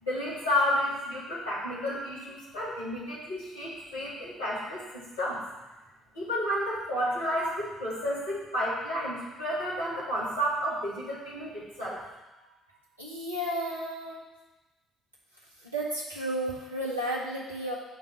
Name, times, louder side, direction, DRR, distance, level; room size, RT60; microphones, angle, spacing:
voice 1, 0.0-5.4 6.1-12.0, equal, 80° left, -9 dB, 3.1 m, -31 dB
voice 2, 12.4-14.2 15.6-17.7, right 1 dB, 85° right, -5 dB, 1.6 m, -33 dB
9.8 x 3.8 x 6.9 m, 1.1 s
figure-of-eight pair, 45°, 0 cm